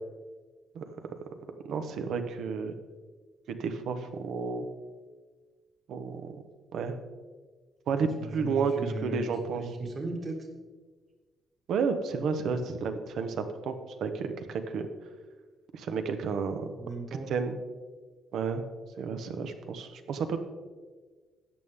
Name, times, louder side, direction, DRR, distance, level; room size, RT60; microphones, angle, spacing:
voice 1, 1.6-2.8 3.5-4.7 5.9-6.4 6.7-7.0 7.9-9.6 11.7-13.7 14.0-14.9 15.7-16.7 17.3-17.6 18.3-18.6 19.0-20.4, right 5 dB, 75° right, 8 dB, 1.1 m, -31 dB
voice 2, 8.2-10.4 16.6-17.3, right 2 dB, 45° right, 2 dB, 1.9 m, -37 dB
13.5 x 8.9 x 3.6 m, 1.4 s
cardioid pair, 90°, 0 cm